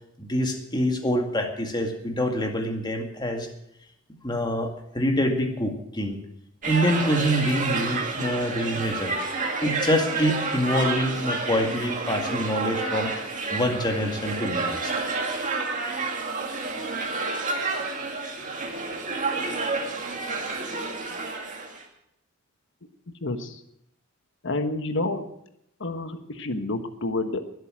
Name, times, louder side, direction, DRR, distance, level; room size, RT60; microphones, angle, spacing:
voice 1, 0.2-3.5 4.2-4.7 4.9-6.2 6.7-9.1 9.6-13.1 13.5-14.9, equal, 20° left, 3 dB, 2.1 m, -26 dB
sound 1, 6.6-21.8, right 3 dB, 40° right, 2.2 m, -29 dB
voice 2, 23.2-23.6 24.4-25.3 25.8-27.6, left 2 dB, 65° left, 8 dB, 1.4 m, -29 dB
21.5 x 8.1 x 6.3 m, 0.76 s
head